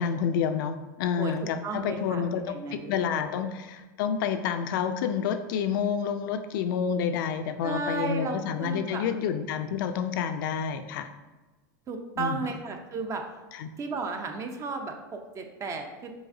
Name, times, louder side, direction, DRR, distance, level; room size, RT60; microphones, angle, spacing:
voice 1, 0.0-11.1 12.2-12.4 13.5-13.7, left 7 dB, 65° left, 9 dB, 0.4 m, -29 dB
voice 2, 1.6-3.5 7.6-9.0 11.9-13.2 13.8-16.1, right 4 dB, 25° right, 5 dB, 0.6 m, -34 dB
4.8 x 4.1 x 2.6 m, 1.2 s
hypercardioid pair, 115°, 11 cm